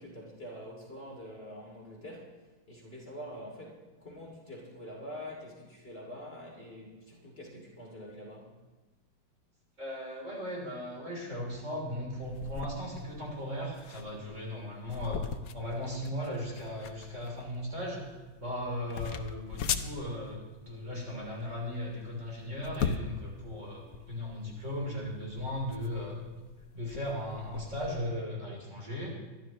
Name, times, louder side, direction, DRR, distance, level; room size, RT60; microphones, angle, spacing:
voice 1, 0.0-2.3 2.7-8.5, equal, 30° left, -3 dB, 3.0 m, -45 dB
voice 2, 9.8-15.2 15.5-26.2 26.7-29.2, left 1 dB, 35° right, -3 dB, 3.9 m, -37 dB
sound 1, 12.2-28.0, left 7 dB, 65° left, 0.9 m, -40 dB
23.5 x 12.0 x 3.1 m, 1.2 s
omnidirectional pair, 2.1 m